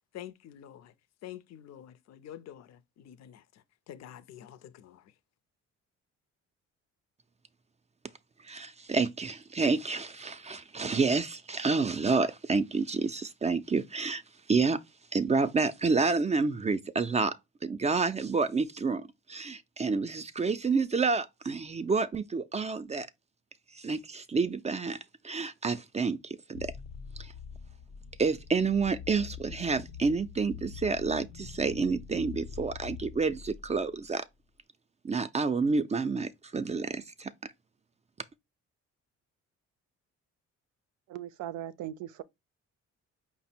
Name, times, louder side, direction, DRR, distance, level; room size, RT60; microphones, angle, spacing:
voice 1, 0.1-0.9 1.2-5.1, left 11 dB, 60° left, 0.5 m, -48 dB
voice 2, 8.4-14.2 14.5-14.8 15.1-17.4 17.6-23.1 23.8-25.0 25.2-26.7 27.2-27.3 28.2-34.2 35.0-37.3, right 4 dB, 25° right, 0.4 m, -29 dB
sound 1, 26.5-34.1, left 7 dB, 85° left, 1.0 m, -45 dB
voice 3, 41.1-42.2, right 12 dB, 85° right, 0.5 m, -39 dB
4.9 x 2.0 x 4.2 m
cardioid pair, 90°, 30 cm